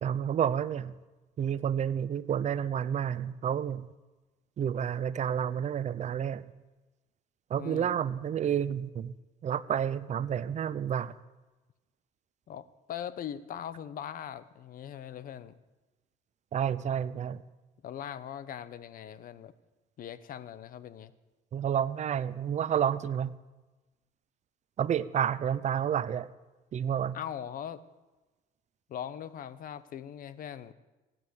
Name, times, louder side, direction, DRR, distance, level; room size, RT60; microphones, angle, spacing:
voice 1, 0.0-0.9 1.4-3.9 4.6-6.4 7.5-9.1 9.4-11.1 16.5-17.4 21.5-23.3 24.8-26.3 26.7-27.2, right 9 dB, 45° right, 15 dB, 0.7 m, -30 dB
voice 2, 7.5-7.9 12.5-15.5 17.8-19.5 20.0-21.1 27.1-27.8 28.9-30.7, left 9 dB, 55° left, 15 dB, 1.0 m, -40 dB
17.0 x 9.2 x 8.1 m, 1.1 s
cardioid pair, 110°, 17 cm